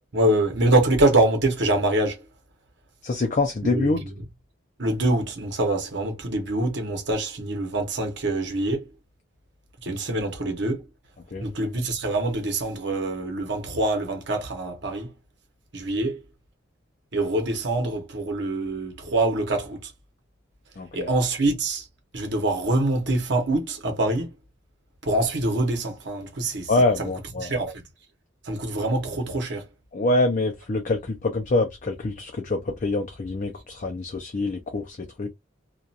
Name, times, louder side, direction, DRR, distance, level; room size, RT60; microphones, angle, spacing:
voice 1, 0.1-2.2 3.6-4.2 4.8-8.9 9.8-10.9 11.4-15.1 15.7-16.2 17.1-19.9 20.9-21.9 22.1-24.3 25.0-26.7 27.0-27.1 27.4-27.7 28.4-29.7, right 2 dB, 60° right, 0.9 m, -25 dB
voice 2, 3.0-4.0 11.3-11.4 20.8-21.1 26.7-27.5 29.9-35.3, left 2 dB, 40° left, 0.4 m, -25 dB
2.4 x 2.3 x 2.6 m
head